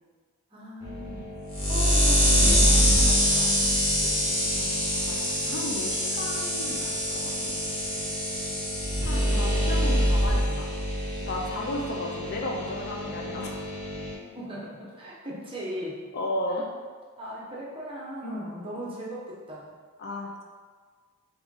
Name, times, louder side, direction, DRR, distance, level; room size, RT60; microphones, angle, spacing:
voice 1, 0.5-1.2 1.6-3.5 14.2-16.0 16.6-16.7 17.2-19.7, equal, 25° right, -6 dB, 0.9 m, -38 dB
sound 1, 0.8-14.1, equal, 25° left, 1.2 m, -25 dB
voice 2, 4.2-7.5 9.0-10.7 11.2-13.6 16.1-16.7 18.2-18.8 20.0-20.4, left 1 dB, 45° left, 0 dB, 0.5 m, -34 dB
3.7 x 3.5 x 3.6 m, 1.5 s
head